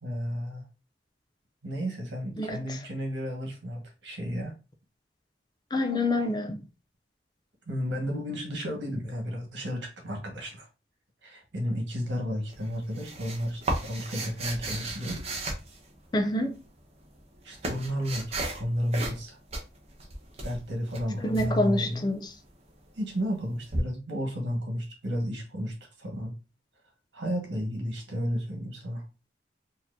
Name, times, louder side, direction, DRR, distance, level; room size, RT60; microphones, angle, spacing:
voice 1, 0.0-0.6 1.6-4.5 7.7-10.7 11.2-15.2 17.4-19.4 20.4-22.1 22.9-26.3 27.1-29.0, equal, 75° right, 1.5 m, -32 dB
voice 2, 2.4-2.8 5.7-6.6 16.1-16.6 21.2-22.3, left 1 dB, 25° left, 0.4 m, -27 dB
sound 1, 12.5-16.3 17.1-18.6 18.9-19.2 19.5-21.5 23.7-23.8, right 2 dB, 35° right, 0.9 m, -34 dB
4.2 x 2.8 x 2.6 m
head